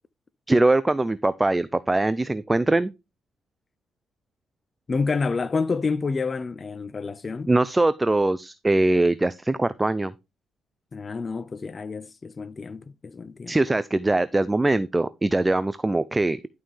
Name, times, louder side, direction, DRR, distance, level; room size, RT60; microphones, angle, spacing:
voice 1, 0.5-2.9 7.5-10.1 13.5-16.4, right 2 dB, 15° right, 0.4 m, -22 dB
voice 2, 4.9-7.5 10.9-13.6, left 4 dB, 35° left, 0.5 m, -28 dB
11.0 x 5.6 x 3.2 m
cardioid pair, 90°, 0 cm